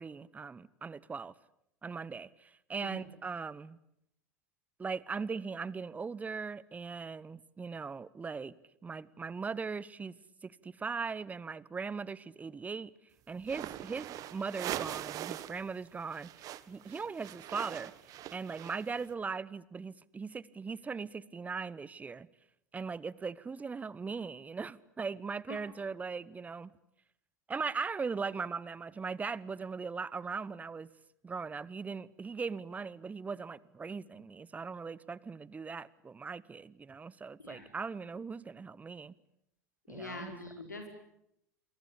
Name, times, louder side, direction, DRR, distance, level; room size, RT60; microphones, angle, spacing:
voice 1, 0.0-1.3 1.8-3.8 4.8-8.5 8.8-10.2 10.4-12.9 13.3-17.9 18.3-22.3 22.7-26.7 27.5-30.9 31.2-39.1 39.9-40.3, right 5 dB, 15° right, 21 dB, 1.0 m, -39 dB
sound 1, 13.4-15.6 15.9-19.0, right 13 dB, 40° right, 1.6 m, -42 dB
voice 2, 39.9-40.9, left 2 dB, 85° left, 4 dB, 4.8 m, -44 dB
28.5 x 23.0 x 8.3 m, 0.79 s
figure-of-eight pair, 85°, 9 cm